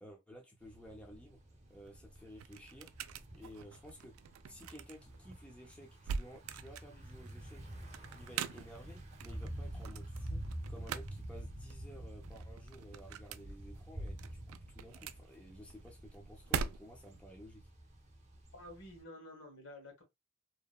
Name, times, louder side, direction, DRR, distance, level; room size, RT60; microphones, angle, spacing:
voice 1, 0.0-1.4 1.7-4.1 4.5-7.7 8.1-17.7, equal, 5° left, 0.5 m, -54 dB
Thunder / Bicycle, 0.6-19.0, right 1 dB, 35° right, 0.7 m, -48 dB
sound 1, 1.7-17.2, right 6 dB, 90° right, 0.3 m, -45 dB
voice 2, 18.5-20.0, left 1 dB, 75° left, 1.2 m, -51 dB
2.8 x 2.2 x 2.2 m
head